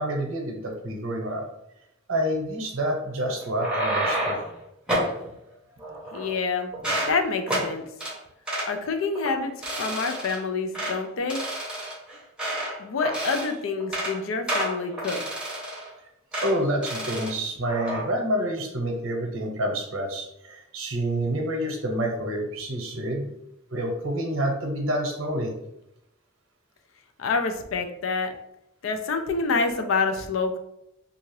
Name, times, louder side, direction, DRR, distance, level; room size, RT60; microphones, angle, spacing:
voice 1, 0.0-1.5 2.1-4.3 16.4-23.3 23.7-25.5, right 1 dB, 90° right, 1 dB, 0.7 m, -28 dB
sound 1, 3.4-4.5 4.9-5.2 5.8-6.4 6.7-7.1 7.5-7.7 8.0-8.1 8.5-8.7 9.1-9.3 9.6-10.4 10.7-11.0 11.3-12.8 13.0-13.5 13.8-14.1 14.5-15.9 16.3-16.5 16.8-17.3 17.7-18.0, right 1 dB, 5° right, 0.7 m, -29 dB
voice 2, 6.1-6.7 7.1-7.8 8.7-11.4 12.8-15.2 27.2-28.3 28.8-30.6, left 4 dB, 80° left, 7 dB, 0.4 m, -27 dB
2.7 x 2.4 x 3.1 m, 0.82 s
head